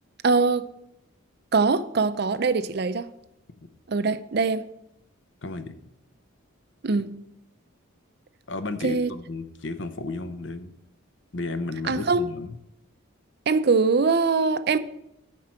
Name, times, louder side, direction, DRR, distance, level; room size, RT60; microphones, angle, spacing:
voice 1, 0.2-0.7 1.5-3.1 3.9-4.6 6.8-7.1 8.8-9.1 11.9-12.2 13.5-14.8, right 4 dB, 50° right, 0.5 m, -22 dB
voice 2, 5.4-5.8 8.5-10.7 11.3-12.6, left 2 dB, 60° left, 0.7 m, -33 dB
9.6 x 4.6 x 7.5 m
head